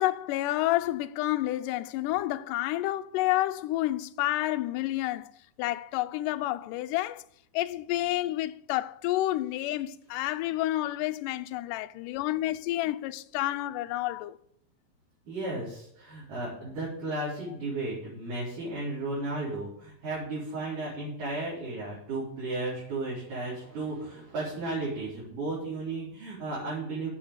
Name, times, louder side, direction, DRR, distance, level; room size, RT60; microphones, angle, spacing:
voice 1, 0.0-5.3 5.6-7.2 7.5-14.4, left 15 dB, 80° left, 2.1 m, -29 dB
voice 2, 15.3-27.1, right 2 dB, 65° right, 5.6 m, -34 dB
8.7 x 7.2 x 8.2 m
omnidirectional pair, 4.0 m